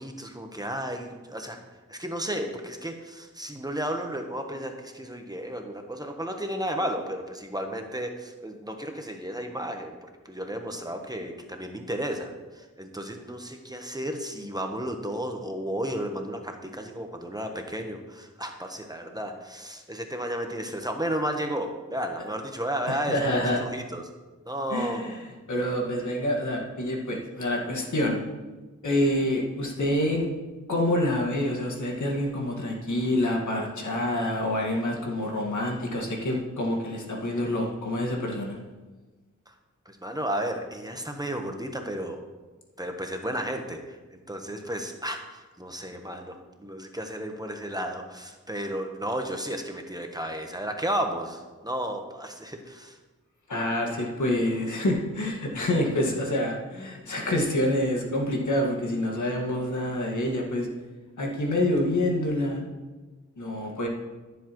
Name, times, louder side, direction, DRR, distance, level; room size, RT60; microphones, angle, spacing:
voice 1, 0.0-1.6 1.9-10.0 10.2-24.0 24.4-25.0 39.5-39.6 39.9-42.2 42.8-53.0, right 1 dB, 15° right, 4 dB, 1.1 m, -33 dB
voice 2, 22.9-23.6 24.7-25.2 25.5-28.2 28.8-30.3 30.7-38.6 53.5-60.7 61.2-62.6 63.4-63.9, left 1 dB, 75° left, -1 dB, 1.9 m, -27 dB
14.5 x 7.3 x 3.1 m, 1.2 s
cardioid pair, 55°, 30 cm